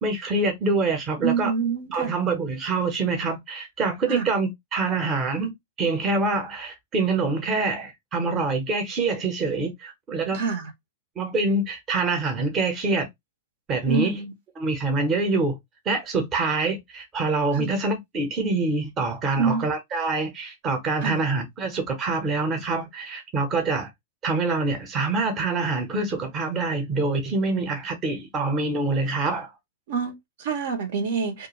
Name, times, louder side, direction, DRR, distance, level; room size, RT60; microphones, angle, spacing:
voice 1, 0.0-1.5 1.9-10.4 11.2-13.1 13.7-14.2 14.6-15.6 15.8-23.9 24.2-29.5, right 3 dB, 25° right, 0.7 m, -25 dB
voice 2, 1.2-2.2 4.1-4.3 10.3-10.7 13.9-14.3 17.5-17.7 19.4-19.7 21.0-21.2 29.9-31.5, right 6 dB, 65° right, 0.8 m, -26 dB
2.4 x 2.2 x 2.9 m
supercardioid pair, 145°, 0 cm